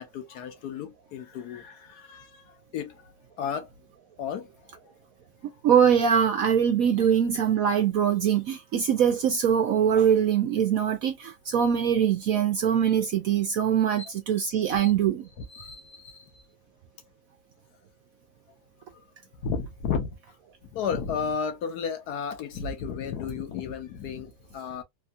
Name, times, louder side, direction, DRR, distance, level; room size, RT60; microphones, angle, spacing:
voice 1, 0.0-3.7 4.2-4.9 7.0-7.1 14.0-14.1 14.7-15.0 15.4-16.2 18.9-19.0 19.4-20.2 20.7-24.8, left 6 dB, 65° left, 1.1 m, -33 dB
voice 2, 5.6-15.2, right 8 dB, 70° right, 0.8 m, -23 dB
3.4 x 2.3 x 2.5 m
omnidirectional pair, 1.9 m